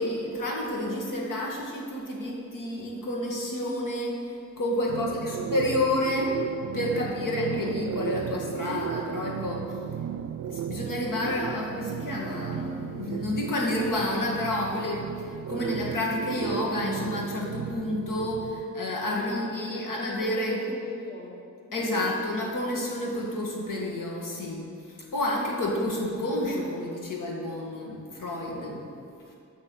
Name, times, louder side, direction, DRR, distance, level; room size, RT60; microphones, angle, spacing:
voice 1, 0.0-4.2 4.6-6.4 6.7-9.8 10.5-20.6 21.7-24.7 25.1-28.9, left 1 dB, 85° left, -2 dB, 1.9 m, -30 dB
voice 2, 4.9-5.3 6.9-7.1 19.1-22.1, left 2 dB, 30° left, -1 dB, 1.3 m, -41 dB
sound 1, 4.9-18.6, right 9 dB, 65° right, 0.4 m, -35 dB
8.2 x 6.1 x 7.8 m, 2.5 s
wide cardioid pair, 140°, 31 cm